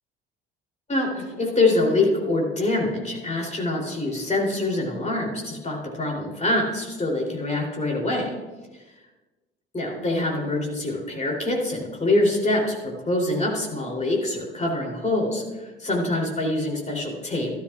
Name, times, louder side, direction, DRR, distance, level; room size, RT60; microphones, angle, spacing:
voice 1, 0.9-8.3 9.7-17.5, left 2 dB, 20° left, -1 dB, 3.0 m, -25 dB
13.0 x 12.5 x 2.4 m, 1.2 s
figure-of-eight pair, 55°, 31 cm